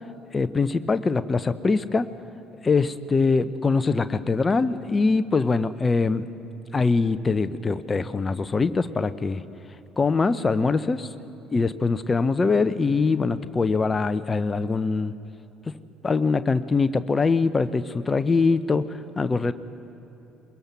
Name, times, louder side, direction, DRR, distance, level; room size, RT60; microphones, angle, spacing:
voice 1, 0.3-2.1 2.6-6.3 6.7-9.4 10.0-11.1 11.5-15.1 15.7-15.8 16.0-19.5, left 4 dB, 25° left, 12 dB, 0.9 m, -23 dB
22.5 x 21.5 x 6.1 m, 3.0 s
figure-of-eight pair, 55°, 0 cm